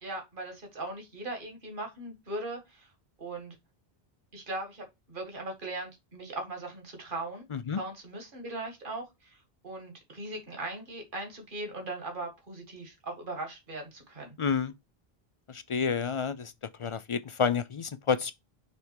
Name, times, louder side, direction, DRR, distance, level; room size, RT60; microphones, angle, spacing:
voice 1, 0.0-2.9 3.2-3.6 4.3-7.5 7.7-14.4, right 2 dB, 55° right, 1.9 m, -39 dB
voice 2, 14.4-14.7 15.5-16.5 16.8-18.3, left 6 dB, 50° left, 0.3 m, -29 dB
6.8 x 3.5 x 4.6 m
omnidirectional pair, 1.0 m